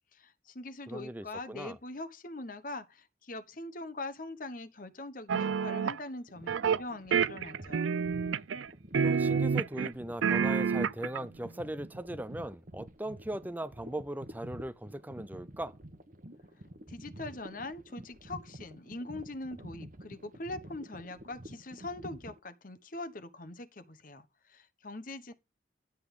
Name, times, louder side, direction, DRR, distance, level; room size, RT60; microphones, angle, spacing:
voice 1, 0.1-7.9 16.9-25.3, left 2 dB, 45° left, 1.1 m, -42 dB
voice 2, 0.9-1.8 8.9-15.8, right 1 dB, 10° right, 0.5 m, -39 dB
sound 1, 5.3-6.0 6.5-6.8 7.1-8.7 8.9-9.9 10.2-11.2, right 6 dB, 85° right, 0.5 m, -28 dB
sound 2, 6.3-22.4, right 1 dB, 45° right, 1.2 m, -49 dB
12.0 x 8.1 x 3.7 m
head